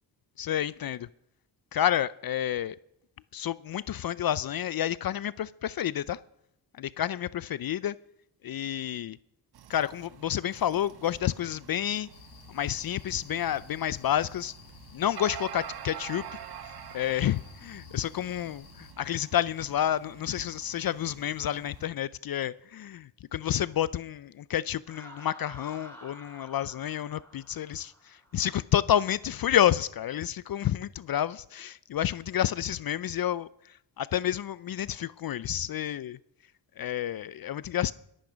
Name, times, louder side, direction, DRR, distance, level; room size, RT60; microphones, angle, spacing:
voice 1, 0.4-1.1 1.7-2.8 3.3-6.2 6.8-7.9 8.4-9.2 9.7-12.1 12.5-14.5 14.9-16.2 16.6-33.5 34.0-36.2 36.8-37.9, left 11 dB, 50° left, 0.5 m, -29 dB
sound 1, 9.5-21.8, right 10 dB, 55° right, 0.9 m, -47 dB
sound 2, 12.1-18.9, left 8 dB, 85° left, 1.4 m, -53 dB
Laughter, 24.9-28.5, equal, 5° left, 7.2 m, -50 dB
21.5 x 8.7 x 5.1 m
cardioid pair, 60°, 46 cm